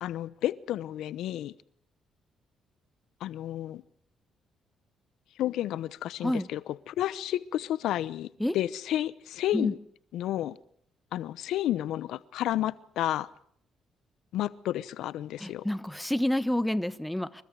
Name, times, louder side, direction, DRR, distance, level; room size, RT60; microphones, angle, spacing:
voice 1, 0.0-1.5 3.2-3.8 5.4-6.6 6.9-8.3 8.5-9.8 10.1-10.6 11.1-13.3 14.3-15.6, left 13 dB, 85° left, 0.9 m, -31 dB
voice 2, 15.4-17.4, left 1 dB, 5° left, 1.4 m, -29 dB
27.5 x 23.0 x 4.9 m
cardioid pair, 90°, 0 cm